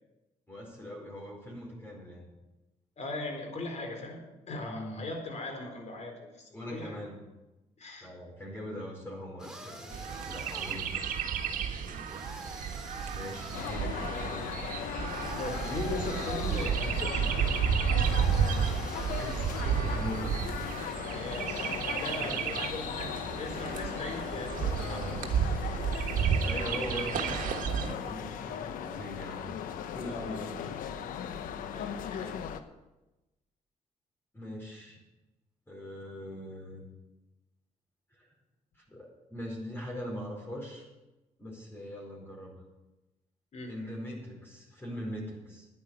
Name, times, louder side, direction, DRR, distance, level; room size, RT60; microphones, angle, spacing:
voice 1, 0.5-2.3 4.7-5.0 6.5-7.2 8.0-10.9 13.1-14.5 19.1-20.5 21.9-22.5 24.7-25.2 26.4-29.6 29.9-30.6 34.3-35.0 35.7-36.8 38.1-38.3 38.7-40.9 41.4-42.5 43.7-45.7, equal, 15° left, -2 dB, 4.7 m, -41 dB
voice 2, 3.0-4.2 4.5-7.0 7.8-8.1 11.7-12.0 14.1-14.3 15.3-17.4 21.0-25.3 30.1-30.6 31.7-32.4 43.5-43.7, left 2 dB, 55° left, 3 dB, 4.1 m, -39 dB
sound 1, 9.4-11.0 12.1-13.9 15.1-16.9 18.0-19.8, right 1 dB, 5° right, 2.8 m, -45 dB
Chirp tweet, 9.9-27.9, right 7 dB, 75° right, 1.4 m, -32 dB
sound 2, 13.5-32.6, left 8 dB, 85° left, 0.9 m, -38 dB
10.5 x 10.0 x 7.9 m, 1.0 s
supercardioid pair, 65°, 14 cm